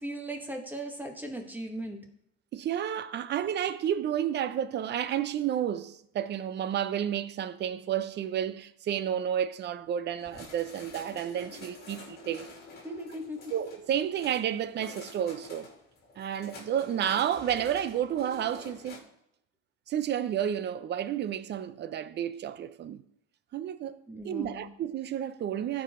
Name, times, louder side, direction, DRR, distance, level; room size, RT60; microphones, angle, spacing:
voice 1, 0.0-2.0 12.8-13.5 24.1-24.7, right 1 dB, 5° right, 1.6 m, -38 dB
voice 2, 2.5-12.5 13.5-15.7 16.2-19.0 19.9-23.0 23.5-24.0 24.2-25.8, right 10 dB, 35° right, 0.6 m, -31 dB
sound 1, 10.2-19.0, left 3 dB, 30° left, 2.7 m, -48 dB
14.5 x 4.9 x 3.7 m
supercardioid pair, 115°, 30 cm